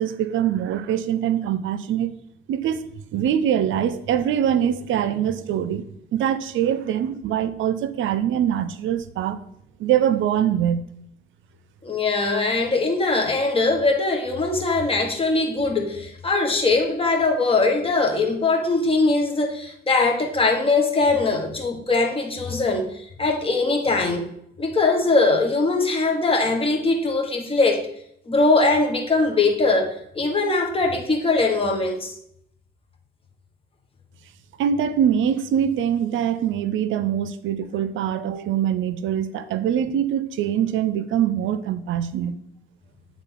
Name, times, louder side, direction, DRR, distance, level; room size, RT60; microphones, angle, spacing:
voice 1, 0.0-2.1 2.5-2.8 3.1-5.8 6.1-9.4 9.8-10.9 34.6-42.4, right 9 dB, 75° right, 0.5 m, -23 dB
voice 2, 11.8-24.2 24.6-27.8 28.3-32.2, left 3 dB, 25° left, 1.4 m, -21 dB
9.0 x 3.7 x 3.9 m
cardioid pair, 90°, 20 cm